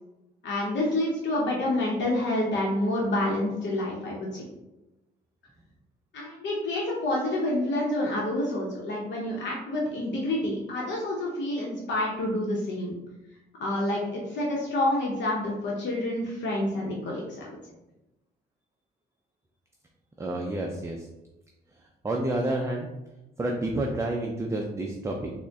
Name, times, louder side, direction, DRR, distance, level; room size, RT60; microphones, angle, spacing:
voice 1, 0.4-4.4 6.1-12.9 13.6-17.6, left 1 dB, 65° left, -3 dB, 0.8 m, -28 dB
voice 2, 20.2-21.1 22.0-22.9 23.4-25.3, right 1 dB, 15° right, 1 dB, 0.4 m, -29 dB
3.6 x 2.1 x 3.4 m, 0.94 s
cardioid pair, 90°, 20 cm